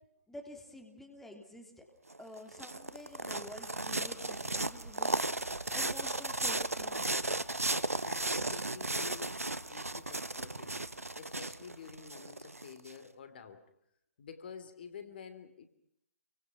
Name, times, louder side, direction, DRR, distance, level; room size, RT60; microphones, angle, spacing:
voice 1, 0.3-1.8 2.2-7.4, left 1 dB, 5° left, 3 dB, 3.4 m, -50 dB
sound 1, 2.1-12.9, right 2 dB, 80° right, 1.3 m, -35 dB
voice 2, 8.0-10.8 11.1-13.6 14.2-15.7, left 6 dB, 40° left, 9 dB, 2.9 m, -49 dB
29.0 x 24.5 x 6.0 m, 0.74 s
figure-of-eight pair, 135°, 8 cm